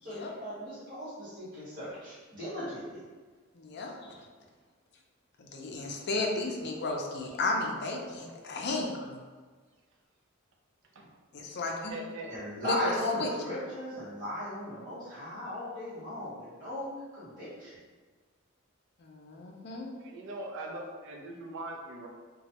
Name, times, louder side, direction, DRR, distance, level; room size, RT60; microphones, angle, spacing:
voice 1, 0.0-3.0 12.3-17.8, left 1 dB, 40° right, -13 dB, 1.5 m, -37 dB
voice 2, 3.5-4.3 5.4-9.2 11.3-12.0 12.6-13.3 19.0-19.9, left 2 dB, 55° left, 1 dB, 0.5 m, -34 dB
voice 3, 11.9-12.4 20.0-22.1, right 2 dB, 60° right, 1 dB, 0.5 m, -41 dB
3.0 x 2.3 x 2.8 m, 1.4 s
head